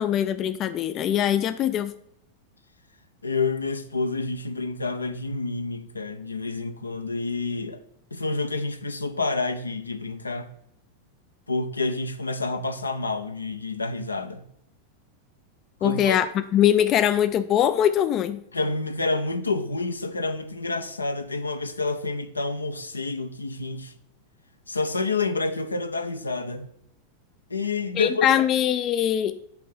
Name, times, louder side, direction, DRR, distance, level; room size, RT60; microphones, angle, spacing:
voice 1, 0.0-1.9 15.8-18.4 28.0-29.4, left 10 dB, 35° left, 0.4 m, -22 dB
voice 2, 3.2-7.8 8.1-10.5 11.5-14.5 15.8-16.2 18.5-23.9 24.7-26.7 27.5-28.3, left 3 dB, 80° left, 0.7 m, -28 dB
9.0 x 3.7 x 5.6 m
figure-of-eight pair, 90°, 0 cm